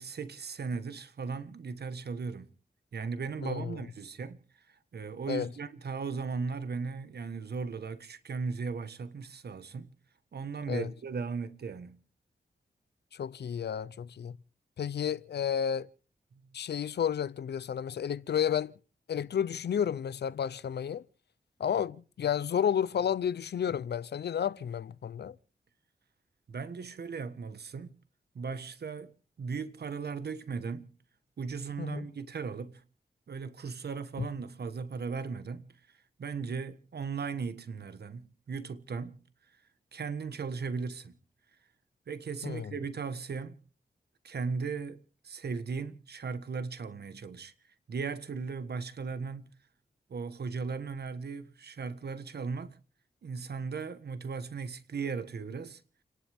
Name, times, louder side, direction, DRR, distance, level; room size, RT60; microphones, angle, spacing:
voice 1, 0.0-2.5 2.9-4.4 4.7-9.9 10.3-12.0 16.3-16.5 26.5-28.0 28.3-30.9 31.4-32.8 33.3-39.2 39.9-41.2 42.1-43.6 44.2-47.5 47.9-49.5 50.1-52.8 53.2-55.8, right 5 dB, 75° right, 1.4 m, -37 dB
voice 2, 3.4-3.8 5.3-5.5 10.7-10.9 13.1-14.3 14.8-15.9 16.5-18.7 19.1-21.0 21.6-25.3 31.8-32.1 42.4-42.7, left 8 dB, 80° left, 0.6 m, -31 dB
30.0 x 11.5 x 3.6 m
cardioid pair, 50°, 17 cm